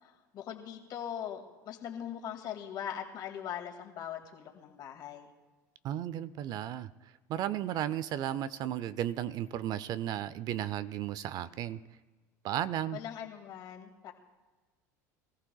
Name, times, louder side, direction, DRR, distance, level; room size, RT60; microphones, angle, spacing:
voice 1, 0.0-5.3 12.9-14.1, left 9 dB, 50° left, 2 dB, 2.1 m, -41 dB
voice 2, 5.8-6.9 7.3-11.8 12.4-13.0, right 11 dB, 50° right, 16 dB, 0.5 m, -34 dB
24.0 x 14.5 x 2.3 m, 1.3 s
supercardioid pair, 110°, 9 cm